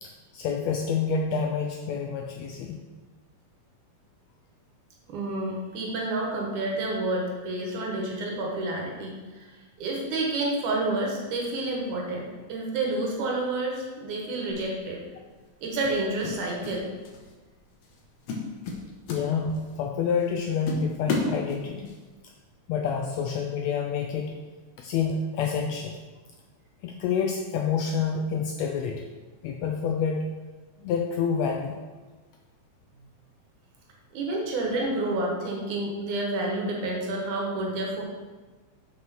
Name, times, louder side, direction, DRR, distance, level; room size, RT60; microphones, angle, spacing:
voice 1, 0.0-2.8 19.1-21.9 22.7-24.4 24.8-26.0 26.8-29.1 29.4-30.3 30.8-31.8, left 6 dB, 85° left, 2 dB, 1.6 m, -28 dB
voice 2, 5.1-9.5 9.8-15.0 15.6-16.9 34.1-38.0, right 2 dB, 75° right, -1 dB, 2.7 m, -29 dB
sound 1, 14.5-14.7 15.8-16.8 17.1-17.4 17.8-18.0 18.3-19.8 20.2-20.3 20.7-22.0, left 3 dB, 65° left, 2.1 m, -32 dB
6.2 x 5.9 x 6.0 m, 1.3 s
omnidirectional pair, 3.6 m